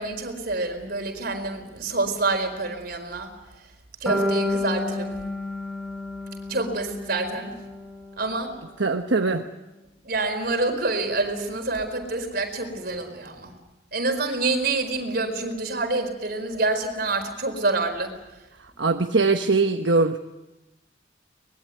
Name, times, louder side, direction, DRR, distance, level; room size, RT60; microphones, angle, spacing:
voice 1, 0.0-3.3 4.0-5.2 6.5-7.5 8.2-8.5 10.1-13.5 13.9-18.1, right 3 dB, 55° right, 5 dB, 4.7 m, -27 dB
sound 1, 4.1-8.2, left 1 dB, 5° left, 5.4 m, -30 dB
voice 2, 8.8-9.4 18.8-20.2, right 3 dB, 75° right, 6 dB, 1.2 m, -21 dB
24.0 x 21.5 x 9.3 m, 1.0 s
head